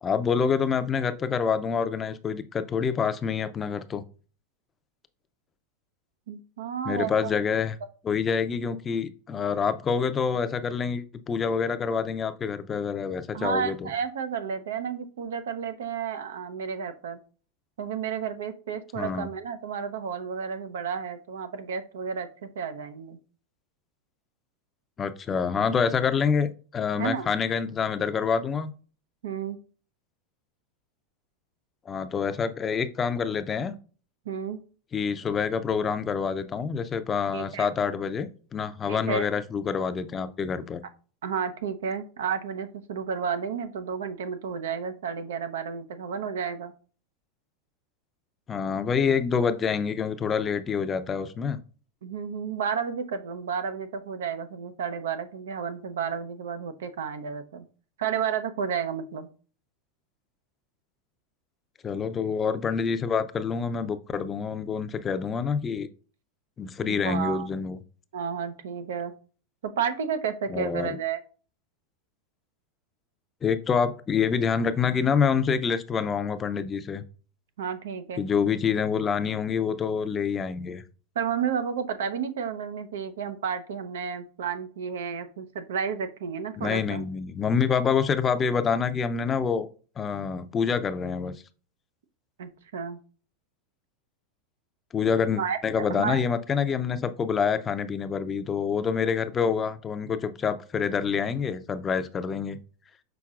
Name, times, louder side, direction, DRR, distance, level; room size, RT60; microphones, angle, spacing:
voice 1, 0.0-4.0 6.8-7.7 8.0-13.8 19.0-19.3 25.0-28.7 31.9-33.7 34.9-40.8 48.5-51.6 61.8-65.9 66.6-67.8 70.5-71.0 73.4-77.0 78.2-80.8 86.6-89.7 90.0-91.3 94.9-102.6, left 6 dB, 25° left, 11 dB, 0.5 m, -27 dB
voice 2, 6.3-7.3 13.3-17.2 17.8-23.2 27.0-27.3 29.2-29.6 34.3-34.6 37.3-37.7 38.9-39.3 41.2-46.7 52.0-57.6 58.0-59.3 66.9-67.5 68.1-69.1 69.6-71.2 77.6-78.2 81.2-87.0 92.4-93.0 95.4-95.6 95.9-96.2, right 7 dB, 85° right, 10 dB, 0.7 m, -31 dB
5.9 x 3.8 x 2.4 m, 0.38 s
supercardioid pair, 125°, 0 cm